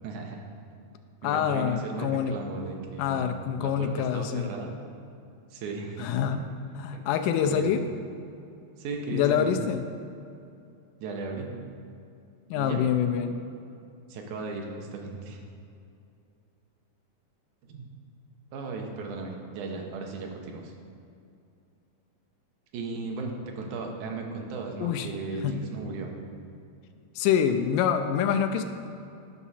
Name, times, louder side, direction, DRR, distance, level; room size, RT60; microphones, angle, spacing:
voice 1, 0.0-0.8 1.2-4.7 5.5-6.2 6.9-7.0 7.4-7.7 8.8-9.5 11.0-11.5 12.5-12.8 14.1-15.4 17.6-17.9 18.5-20.7 22.7-26.1, right 3 dB, 75° right, 1 dB, 2.4 m, -36 dB
voice 2, 1.2-2.3 3.0-4.5 6.0-6.4 6.8-7.8 9.1-9.8 12.5-13.4 24.8-25.1 25.4-25.6 27.2-28.6, left 8 dB, 90° left, 7 dB, 2.1 m, -26 dB
11.0 x 5.9 x 4.2 m, 2.6 s
omnidirectional pair, 3.6 m